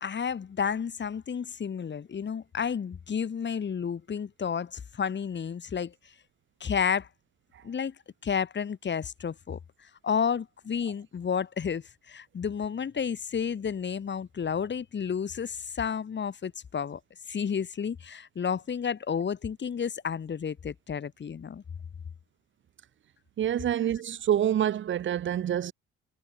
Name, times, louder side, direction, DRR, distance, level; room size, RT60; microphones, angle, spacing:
voice 1, 0.0-5.9 6.6-7.1 7.6-7.9 8.2-17.0 17.3-21.6, left 7 dB, 35° left, 1.3 m, -31 dB
voice 2, 23.4-25.7, right 10 dB, 40° right, 0.5 m, -27 dB
cardioid pair, 90°, 30 cm